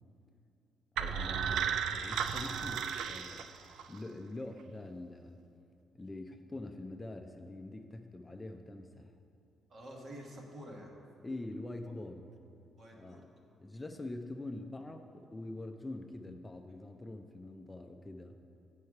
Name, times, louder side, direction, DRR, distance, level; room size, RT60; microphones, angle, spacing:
voice 1, 1.0-3.5 3.9-5.4 5.9-9.1 11.2-12.4 12.9-13.3 13.6-18.4, left 2 dB, 15° left, 5 dB, 0.4 m, -44 dB
sound 1, 1.0-4.0, right 7 dB, 80° right, 0.3 m, -34 dB
voice 2, 9.7-10.9 12.8-13.2, equal, 50° right, -1 dB, 1.4 m, -48 dB
8.1 x 5.4 x 4.7 m, 2.6 s
cardioid pair, 90°, 0 cm